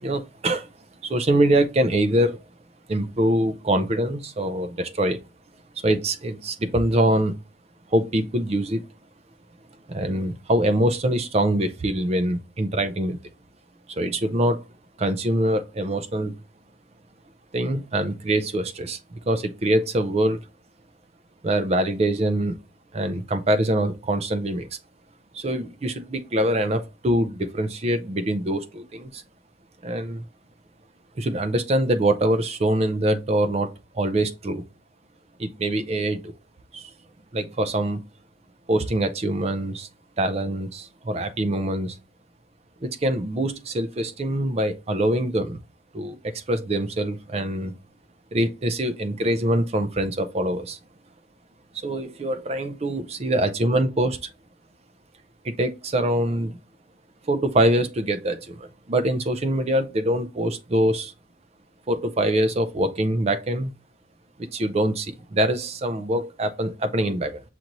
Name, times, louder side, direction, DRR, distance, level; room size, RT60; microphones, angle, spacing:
voice 1, 0.0-0.6 1.0-2.4 2.9-5.2 5.8-7.4 7.9-8.8 9.9-13.2 14.0-14.6 15.0-16.3 17.5-19.0 19.3-20.4 21.4-22.6 22.9-24.7 25.3-29.2 29.8-30.2 31.2-33.7 34.0-34.6 35.4-36.2 36.7-36.8 37.3-38.0 38.7-39.9 40.2-41.9 42.8-45.6 45.9-47.7 48.3-50.8 51.8-54.2 55.6-56.6 57.3-58.6 58.9-61.1 61.9-63.7 64.5-67.4, right 1 dB, 30° right, 0.4 m, -24 dB
5.9 x 2.6 x 2.9 m
head